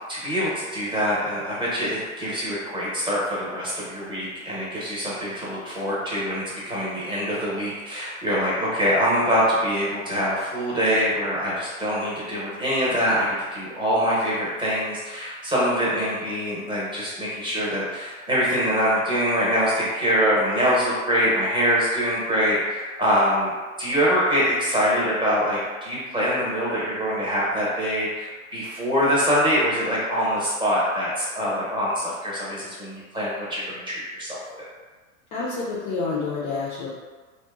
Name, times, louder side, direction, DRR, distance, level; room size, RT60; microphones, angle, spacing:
voice 1, 0.1-34.6, equal, 10° right, -8 dB, 0.8 m, -24 dB
voice 2, 35.3-36.9, left 4 dB, 30° left, -6 dB, 0.4 m, -28 dB
2.8 x 2.1 x 2.3 m, 1.4 s
hypercardioid pair, 115°, 40 cm